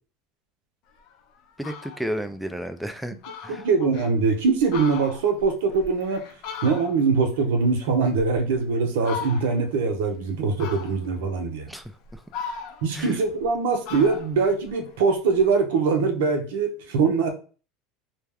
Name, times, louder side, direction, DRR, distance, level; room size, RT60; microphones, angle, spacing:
Fowl, 1.0-1.1 1.5-2.1 2.6-2.7 2.9-3.0 3.2-4.1 4.6-7.2 7.5-8.6 9.0-9.7 10.6-11.2 11.8-13.5 13.8-15.4, left 6 dB, 60° left, 0.5 m, -38 dB
voice 1, 1.6-3.2 3.4-3.6 11.7-11.8 12.1-12.2 12.9-13.2, equal, ahead, 8 dB, 0.3 m, -32 dB
voice 2, 3.5-6.3 6.6-11.7 12.8-17.3, right 4 dB, 80° right, 6 dB, 0.6 m, -22 dB
2.2 x 2.2 x 3.4 m, 0.37 s
supercardioid pair, 100°, 0 cm